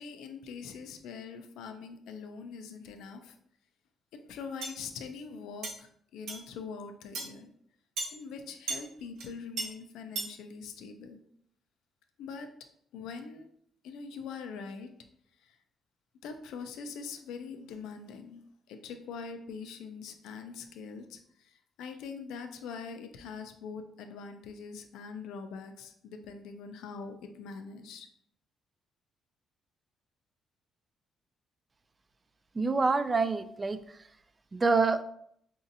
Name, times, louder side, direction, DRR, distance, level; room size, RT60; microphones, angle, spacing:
voice 1, 0.0-3.4 4.1-7.5 8.1-11.2 12.2-12.5 12.9-13.5 13.8-14.9 15.4-15.6 16.2-18.4 18.7-28.1, left 5 dB, 85° left, 6 dB, 0.4 m, -43 dB
sound 1, 4.6-4.8 5.6-5.8 6.3-6.4 7.1-7.3 8.0-8.1 8.7-8.8 9.2-9.3 9.6-9.7 10.2-10.3, right 3 dB, 85° right, 0.9 m, -34 dB
voice 2, 32.6-33.8 34.5-35.0, right 4 dB, 30° right, 11 dB, 0.3 m, -26 dB
4.9 x 2.7 x 2.6 m, 0.69 s
cardioid pair, 90°, 0 cm